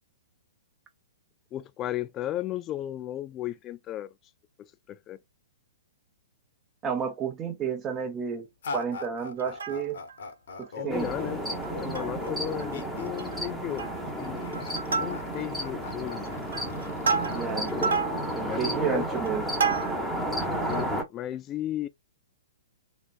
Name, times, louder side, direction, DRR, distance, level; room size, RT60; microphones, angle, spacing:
voice 1, 1.5-4.1 4.9-5.2 10.7-11.4 11.8-14.7 15.0-16.4 18.4-19.0 20.7-21.9, left 13 dB, 25° left, 0.4 m, -35 dB
voice 2, 6.8-8.5 8.7-10.0 10.6-11.1 17.3-17.7 18.3-19.4, right 7 dB, 20° right, 0.9 m, -31 dB
sound 1, 8.6-18.6, left 3 dB, 55° left, 1.0 m, -41 dB
Plucked string instrument, 9.4-10.2 10.6-10.7 11.0-11.2 11.6-12.3 12.6-12.7 13.1-13.4 13.8-14.2 14.5-15.6 16.1-20.2 20.7-20.8, right 5 dB, 65° right, 0.7 m, -31 dB
sound 2, 10.9-21.0, right 1 dB, ahead, 1.0 m, -32 dB
3.4 x 3.1 x 2.5 m
figure-of-eight pair, 115°, 0 cm